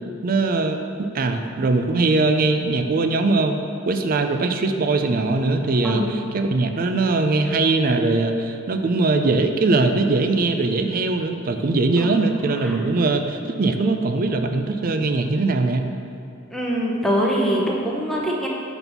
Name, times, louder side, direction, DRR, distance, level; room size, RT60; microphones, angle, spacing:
voice 1, 0.2-3.6 3.9-15.9, right 3 dB, 45° right, 6 dB, 0.4 m, -21 dB
voice 2, 16.5-18.5, equal, ahead, -3 dB, 0.8 m, -23 dB
5.3 x 4.0 x 5.8 m, 2.6 s
head